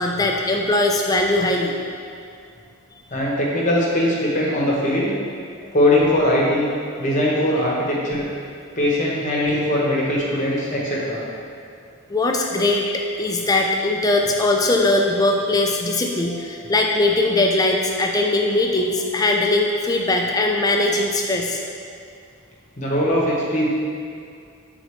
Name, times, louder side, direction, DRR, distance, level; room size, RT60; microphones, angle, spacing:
voice 1, 0.0-1.8 12.1-21.6, left 2 dB, 15° left, 1 dB, 0.3 m, -20 dB
voice 2, 3.1-5.1 5.7-6.7 7.0-8.3 8.8-11.2 22.8-23.7, left 1 dB, 35° left, -4 dB, 0.9 m, -20 dB
7.9 x 3.8 x 3.1 m, 2.3 s
head